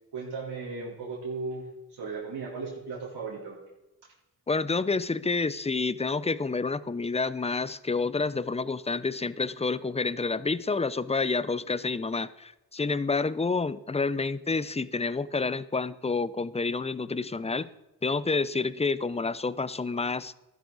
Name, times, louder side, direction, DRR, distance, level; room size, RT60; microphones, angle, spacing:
voice 1, 0.1-3.6, right 4 dB, 75° right, -6 dB, 3.8 m, -36 dB
voice 2, 4.5-17.7 18.0-20.3, left 4 dB, 15° left, 17 dB, 0.5 m, -29 dB
13.0 x 11.0 x 4.0 m, 0.96 s
cardioid pair, 50°, 41 cm